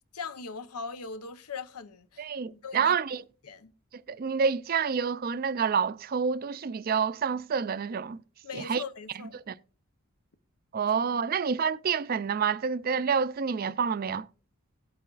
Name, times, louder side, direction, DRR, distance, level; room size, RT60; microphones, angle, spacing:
voice 1, 0.1-3.0 3.4-3.7 8.4-9.4, left 5 dB, 90° left, 0.8 m, -40 dB
voice 2, 2.2-3.2 4.1-8.2 8.5-8.8 9.3-9.5 10.7-14.3, right 6 dB, 40° right, 0.3 m, -28 dB
17.5 x 8.2 x 2.4 m
head